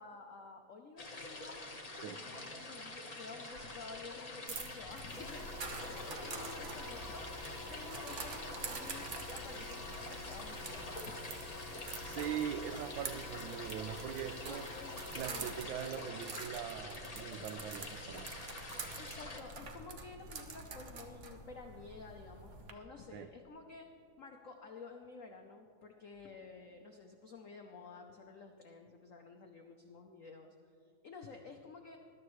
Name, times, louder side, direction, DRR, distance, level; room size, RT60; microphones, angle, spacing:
voice 1, 0.0-1.6 2.0-7.2 7.6-11.3 14.5-15.5 19.0-23.9 24.2-30.5 31.0-32.0, left 4 dB, 75° left, 3 dB, 0.7 m, -51 dB
sound 1, 1.0-19.4, left 2 dB, 25° left, 0.9 m, -47 dB
sound 2, 4.5-22.7, right 4 dB, 50° right, 0.9 m, -47 dB
sound 3, 5.1-15.7, left 2 dB, 5° left, 1.7 m, -49 dB
voice 2, 12.0-14.7 15.1-18.3 23.1-23.3, right 9 dB, 75° right, 9 dB, 1.2 m, -41 dB
20.5 x 12.0 x 3.2 m, 2.3 s
omnidirectional pair, 2.4 m